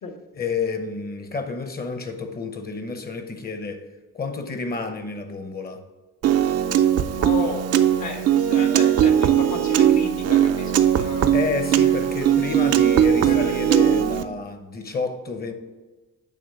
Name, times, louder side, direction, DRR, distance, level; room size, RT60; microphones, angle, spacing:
voice 1, 0.3-3.9 4.1-5.8 11.3-15.5, left 4 dB, 30° left, 0.9 m, -29 dB
Piano, 6.2-14.2, right 10 dB, 55° right, 0.5 m, -19 dB
voice 2, 7.1-7.7 8.0-11.3 13.2-13.5, left 4 dB, 65° left, 1.5 m, -33 dB
8.6 x 3.2 x 5.5 m
cardioid pair, 90°, 30 cm